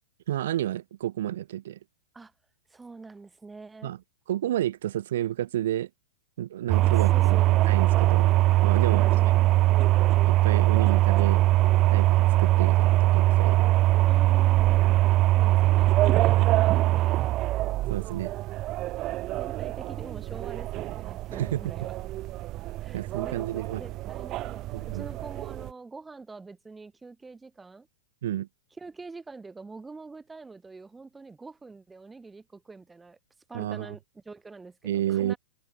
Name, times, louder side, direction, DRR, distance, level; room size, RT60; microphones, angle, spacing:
voice 1, 0.3-1.8 3.8-4.0 4.3-5.9 6.4-8.3 8.6-9.1 10.3-11.4 11.9-13.7 16.4-16.6 17.9-18.3 21.3-21.6 22.9-23.8 24.7-25.1 28.2-28.5 33.5-33.9 34.8-35.3, right 12 dB, 70° right, 2.1 m, -31 dB
voice 2, 2.7-3.9 6.8-7.6 8.9-9.3 14.0-14.9 15.3-17.5 19.0-22.0 22.8-27.9 28.8-33.2 33.5-35.4, right 3 dB, 10° right, 6.8 m, -45 dB
sound 1, 6.7-25.7, right 16 dB, 40° right, 0.3 m, -22 dB
hypercardioid pair, 115°, 0 cm